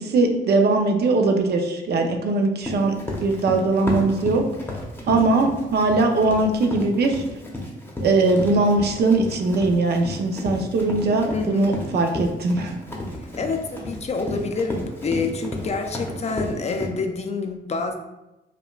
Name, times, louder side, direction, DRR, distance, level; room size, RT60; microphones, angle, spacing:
voice 1, 0.0-2.9 3.2-4.5 5.1-7.2 8.0-12.7, right 3 dB, 55° right, 4 dB, 0.5 m, -20 dB
Run, 2.6-16.9, left 1 dB, 10° left, 0.8 m, -32 dB
voice 2, 11.3-11.8 13.3-17.9, left 4 dB, 35° left, 5 dB, 0.4 m, -27 dB
4.9 x 2.2 x 2.3 m, 0.98 s
cardioid pair, 90°, 20 cm